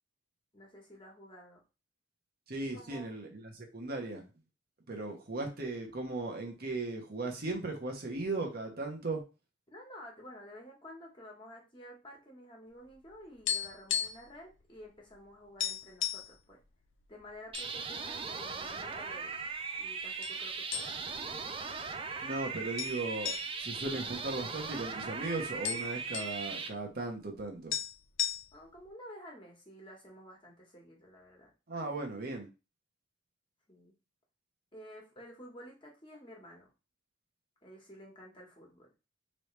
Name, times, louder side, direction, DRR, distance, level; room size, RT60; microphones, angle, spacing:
voice 1, 0.5-1.6 2.7-3.1 5.0-5.1 9.7-16.6 17.1-19.5 19.8-21.7 28.5-31.5 33.7-33.9 34.7-36.7 37.6-38.9, equal, 25° left, -2 dB, 1.4 m, -51 dB
voice 2, 2.5-4.2 4.9-9.2 22.2-27.7 31.7-32.5, right 2 dB, 50° right, 2 dB, 1.0 m, -37 dB
sound 1, 12.9-14.4 14.6-14.8 15.2-15.3 15.6-16.3 17.0-17.7 18.1-18.2 18.9-19.5 20.2-20.4 20.7-21.2 21.6-21.7 22.8-24.8 25.1-25.2 25.4-26.4 27.4-27.5 27.7-28.8, left 10 dB, 80° left, 0.6 m, -35 dB
sound 2, 17.5-26.7, right 5 dB, 30° right, 0.5 m, -39 dB
3.8 x 3.2 x 3.2 m, 0.29 s
head